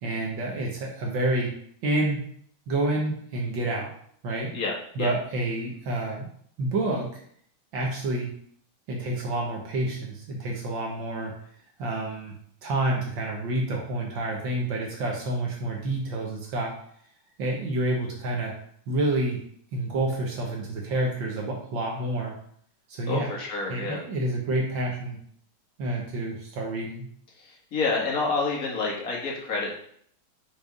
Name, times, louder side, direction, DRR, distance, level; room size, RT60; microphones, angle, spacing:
voice 1, 0.0-1.5 1.8-2.2 2.7-3.9 4.2-4.5 5.0-6.3 6.6-7.2 7.7-8.3 8.9-11.3 11.8-12.3 12.6-16.8 17.4-18.5 18.9-19.4 19.7-22.3 22.9-23.3 23.7-25.2 25.8-27.1, right 2 dB, 70° right, -1 dB, 1.9 m, -28 dB
voice 2, 4.5-5.1 23.1-24.0 27.3-29.7, left 4 dB, 45° left, -3 dB, 2.2 m, -29 dB
5.6 x 5.5 x 5.2 m, 0.63 s
omnidirectional pair, 2.2 m